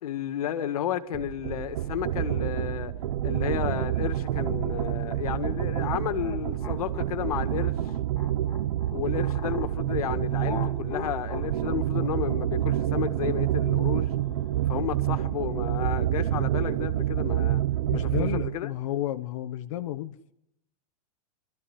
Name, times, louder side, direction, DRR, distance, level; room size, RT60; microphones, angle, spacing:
voice 1, 0.0-2.9 3.2-7.8 8.9-14.1 14.7-17.6 17.9-18.7, left 10 dB, 75° left, 1.8 m, -32 dB
sound 1, 1.1-18.6, right 12 dB, 65° right, 0.7 m, -28 dB
sound 2, 6.1-9.7 10.4-14.9, left 6 dB, 15° left, 1.8 m, -41 dB
voice 2, 17.9-20.3, left 13 dB, 55° left, 0.9 m, -32 dB
23.5 x 13.5 x 9.9 m
supercardioid pair, 150°, 19 cm